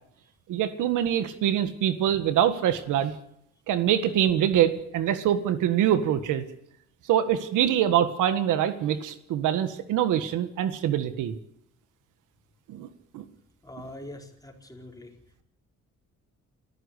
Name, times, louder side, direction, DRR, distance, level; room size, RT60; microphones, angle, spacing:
voice 1, 0.5-3.1 3.7-6.4 7.1-11.3 12.7-12.9 13.1-13.2, right 10 dB, 90° right, 11 dB, 1.7 m, -24 dB
voice 2, 13.6-15.1, left 1 dB, 10° left, 2 dB, 4.8 m, -43 dB
26.5 x 14.0 x 8.3 m, 0.75 s
cardioid pair, 90°, 30 cm